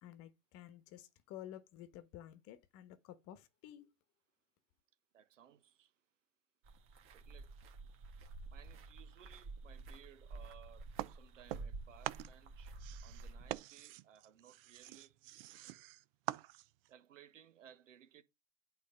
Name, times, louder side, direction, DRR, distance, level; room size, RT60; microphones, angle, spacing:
voice 1, 0.0-3.9, left 12 dB, 40° left, 1.2 m, -52 dB
voice 2, 5.1-5.9 7.1-7.5 8.5-12.8 13.0-15.2 16.9-18.2, right 9 dB, 85° right, 1.4 m, -61 dB
sound 1, 6.6-13.6, right 3 dB, 35° right, 1.8 m, -50 dB
sound 2, 11.0-11.8 12.0-16.9, right 17 dB, 50° right, 0.6 m, -45 dB
8.6 x 4.3 x 5.4 m
hypercardioid pair, 120°, 37 cm